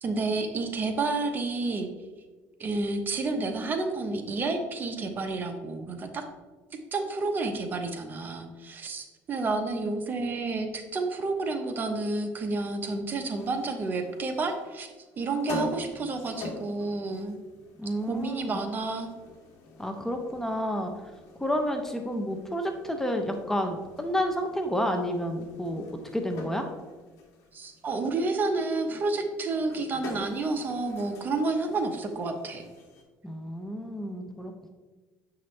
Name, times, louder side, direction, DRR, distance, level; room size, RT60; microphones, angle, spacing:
voice 1, 0.0-1.9 2.6-6.2 6.9-14.9 15.2-17.4 18.0-19.1 27.5-32.7, right 3 dB, 35° right, 5 dB, 0.9 m, -30 dB
sound 1, 13.3-33.0, left 2 dB, 65° left, 1.4 m, -45 dB
voice 2, 17.8-18.6 19.8-20.9 21.4-25.9 26.1-26.7 33.2-34.7, equal, 5° left, 4 dB, 0.7 m, -30 dB
8.0 x 5.9 x 3.2 m, 1.3 s
cardioid pair, 120°, 6 cm